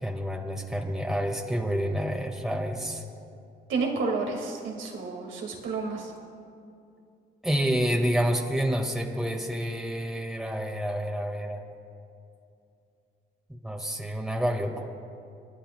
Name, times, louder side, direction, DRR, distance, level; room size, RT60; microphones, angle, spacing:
voice 1, 0.0-3.0 7.4-11.6 13.5-14.7, equal, ahead, 1 dB, 1.7 m, -28 dB
voice 2, 3.7-6.1, right 4 dB, 75° right, 1 dB, 2.0 m, -30 dB
29.0 x 10.0 x 2.2 m, 2.5 s
supercardioid pair, 60°, 20 cm